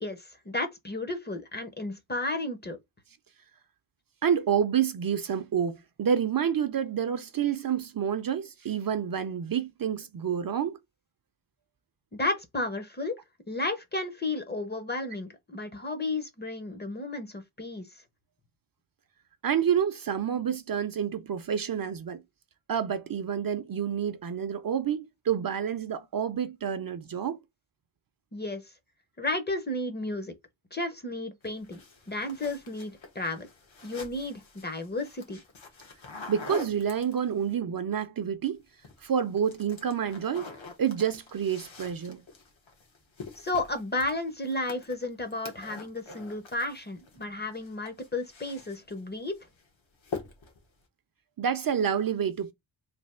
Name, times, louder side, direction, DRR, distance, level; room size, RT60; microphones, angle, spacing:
voice 1, 0.0-2.8 12.1-13.2 13.5-17.9 28.3-28.6 29.2-30.3 30.7-31.8 32.1-33.5 33.8-35.4 43.4-49.4, left 2 dB, 20° left, 0.6 m, -33 dB
voice 2, 4.2-10.8 19.4-22.2 22.7-27.4 36.3-38.6 39.0-40.5 40.8-42.2 51.4-52.5, right 8 dB, 50° right, 0.5 m, -28 dB
sound 1, 31.4-37.5 38.6-39.1 39.4-47.3 47.5-49.0 49.4-49.7 50.0-50.6, left 4 dB, 75° left, 1.4 m, -45 dB
3.3 x 2.6 x 4.2 m
wide cardioid pair, 170°, 47 cm